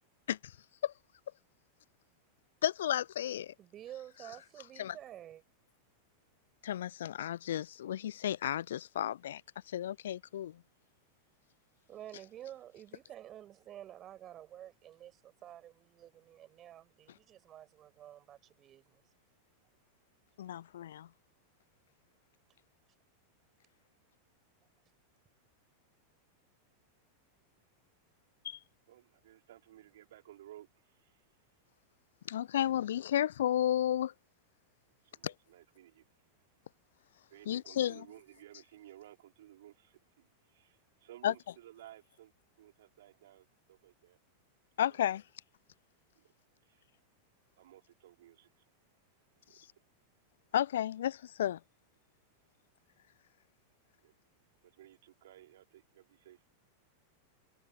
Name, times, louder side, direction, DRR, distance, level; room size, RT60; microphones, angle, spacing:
voice 1, 2.6-3.5 4.8-4.9 6.6-9.4 9.7-10.6 20.4-21.1 28.4-28.6 32.3-34.1 35.2-35.3 37.5-38.0 41.2-41.3 44.8-45.2 50.5-51.6, left 11 dB, 60° left, 0.3 m, -32 dB
voice 2, 3.6-5.4 11.9-19.0, right 11 dB, 30° right, 7.5 m, -50 dB
voice 3, 28.9-31.3 35.0-36.1 37.3-42.3 42.6-44.2 44.9-45.1 46.1-46.3 46.6-46.9 47.6-48.7 49.5-49.6 54.0-54.1 54.6-56.4, right 13 dB, 55° right, 4.5 m, -57 dB
figure-of-eight pair, 90°, 0 cm